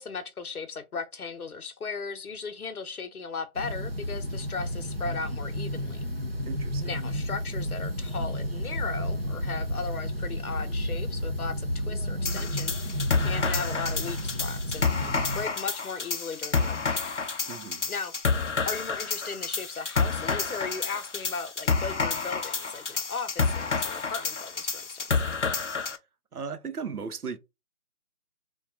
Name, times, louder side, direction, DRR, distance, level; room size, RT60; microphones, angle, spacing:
voice 1, 0.0-6.1 6.8-17.0 17.9-25.2, left 5 dB, 75° left, 0.9 m, -37 dB
sound 1, 3.5-15.4, equal, 45° right, 0.5 m, -32 dB
voice 2, 6.5-6.9 17.5-17.9 26.3-27.4, right 5 dB, 80° right, 0.8 m, -36 dB
sound 2, 12.3-26.0, left 4 dB, 55° left, 0.5 m, -29 dB
3.5 x 2.3 x 3.8 m
figure-of-eight pair, 170°, 45 cm